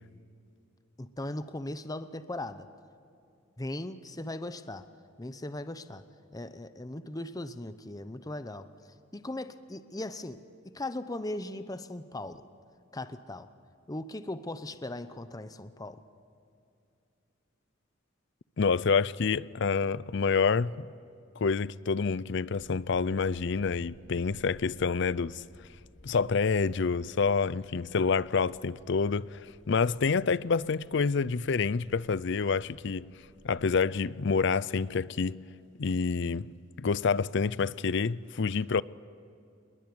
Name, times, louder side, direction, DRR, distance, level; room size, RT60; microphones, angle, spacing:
voice 1, 1.0-2.7 3.6-4.9 5.2-6.0 6.3-12.4 12.9-13.5 13.9-16.0, left 1 dB, 20° left, 0.9 m, -38 dB
voice 2, 18.6-20.9 21.4-25.4 26.0-33.1 33.4-35.4 35.8-36.5 36.8-38.8, left 5 dB, 65° left, 0.5 m, -28 dB
sound 1, 22.5-34.0, equal, 80° left, 3.6 m, -57 dB
27.5 x 21.0 x 9.6 m
head